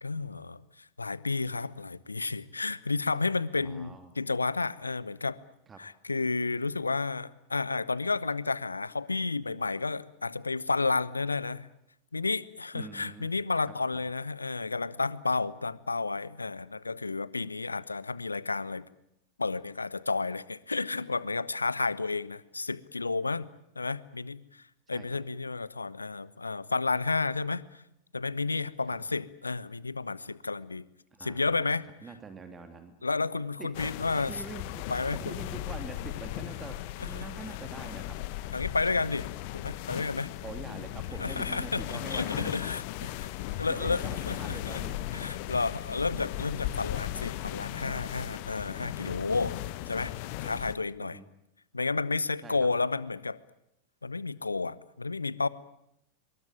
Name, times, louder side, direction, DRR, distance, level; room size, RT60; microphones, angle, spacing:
voice 1, 0.0-5.4 5.8-11.7 12.1-18.8 19.4-23.5 23.7-27.8 28.1-30.8 31.2-31.9 33.0-34.3 34.9-35.4 37.1-37.3 38.5-39.3 39.5-40.3 41.2-43.1 43.6-44.8 45.1-49.6 49.9-50.1 50.4-51.2 51.7-53.4 54.0-55.5, left 3 dB, 80° left, 19 dB, 1.0 m, -31 dB
voice 2, 3.5-4.1 5.7-5.8 12.7-13.3 24.9-25.1 28.9-29.0 31.1-31.8 32.0-32.9 33.6-33.7 34.1-38.2 40.3-42.6 43.0-45.0 51.0-51.3 52.4-52.7, right 4 dB, 20° right, 7 dB, 2.6 m, -45 dB
sound 1, 33.7-50.7, left 15 dB, 45° left, 1.4 m, -37 dB
23.5 x 22.5 x 9.1 m, 0.79 s
figure-of-eight pair, 90°, 0 cm